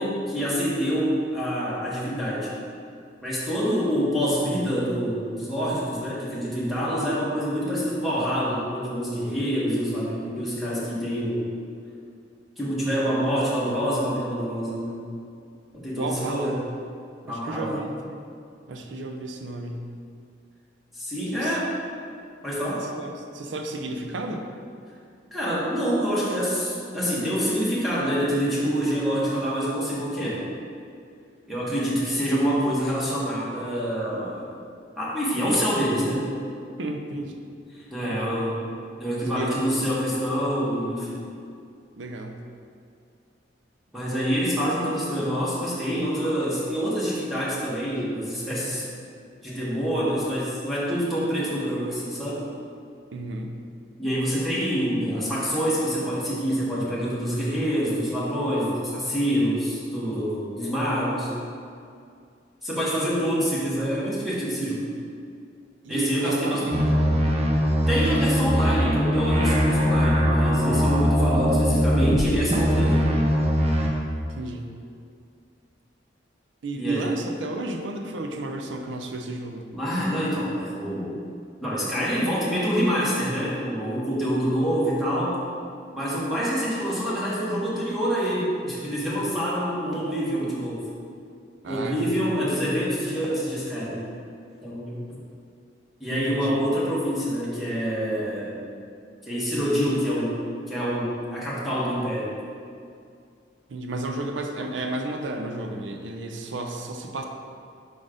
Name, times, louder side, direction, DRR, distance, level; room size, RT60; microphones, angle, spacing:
voice 1, 0.0-2.5 3.2-11.5 12.6-15.0 15.7-16.6 17.3-17.8 20.9-21.7 22.4-22.9 25.3-30.4 31.5-34.5 35.0-36.3 37.7-38.7 39.0-41.2 43.9-48.8 49.4-52.5 54.0-61.3 62.6-64.8 65.9-66.8 67.9-73.0 76.7-77.1 79.7-81.2 81.6-85.4 85.9-90.9 91.7-94.1 94.6-95.0 96.0-98.5 99.2-100.3 100.7-102.4, equal, ahead, -8 dB, 1.2 m, -26 dB
voice 2, 15.9-16.6 17.2-18.2 18.7-19.9 21.3-21.6 22.8-24.5 36.8-37.5 38.0-38.3 39.2-39.8 42.0-42.4 53.1-53.6 65.8-66.8 74.3-74.7 76.6-79.7 91.6-92.3 96.1-96.6 103.7-107.3, right 2 dB, 80° right, 3 dB, 0.5 m, -32 dB
sound 1, 66.7-72.2 72.5-73.9, equal, 35° right, 0.7 m, -21 dB
4.9 x 4.1 x 5.0 m, 2.3 s
head